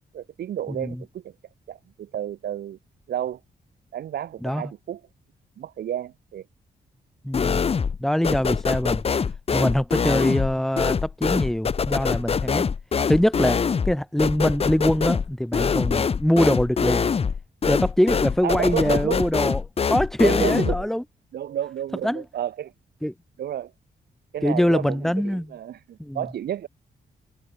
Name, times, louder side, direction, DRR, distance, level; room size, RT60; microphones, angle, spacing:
voice 1, 0.1-1.3 1.7-2.8 3.1-3.4 3.9-5.0 5.6-6.4 18.4-19.2 20.2-20.9 21.3-22.7 23.4-23.7 24.3-26.7, right 11 dB, 85° right, 4.6 m, -31 dB
voice 2, 7.2-7.6 8.0-9.0 9.5-12.7 13.1-13.6 13.9-17.1 17.7-21.0 22.0-22.2 23.0-23.1 24.4-25.5 26.0-26.2, equal, ahead, 5.3 m, -23 dB
sound 1, 7.3-8.0 8.2-20.9, left 6 dB, 40° left, 5.4 m, -24 dB
wide cardioid pair, 160°, 16 cm